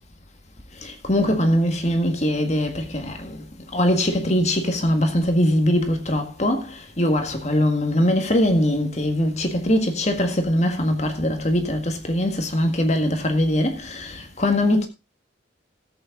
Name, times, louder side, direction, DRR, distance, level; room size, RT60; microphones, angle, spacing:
voice 1, 0.8-3.4 3.7-14.9, left 1 dB, 35° left, 1.8 m, -22 dB
13.5 x 8.6 x 3.8 m
head